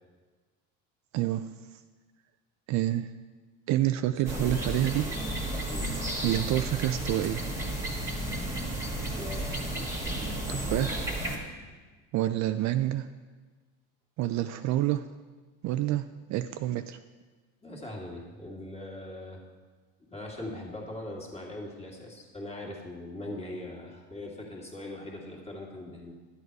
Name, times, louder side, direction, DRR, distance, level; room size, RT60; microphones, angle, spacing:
voice 1, 1.1-1.4 2.7-3.1 3.7-5.0 6.2-7.4 10.5-11.1 12.1-13.1 14.2-15.0 15.6-16.0 16.3-17.0, right 14 dB, 50° right, 10 dB, 0.4 m, -28 dB
voice 2, 4.1-4.8 5.1-5.2 5.7-6.0 9.2-9.7 17.6-19.4 20.0-26.1, left 1 dB, 15° left, -1 dB, 2.1 m, -41 dB
sound 1, 4.3-11.4, right 1 dB, 10° right, 1.7 m, -33 dB
11.0 x 8.2 x 4.7 m, 1.4 s
supercardioid pair, 110°, 36 cm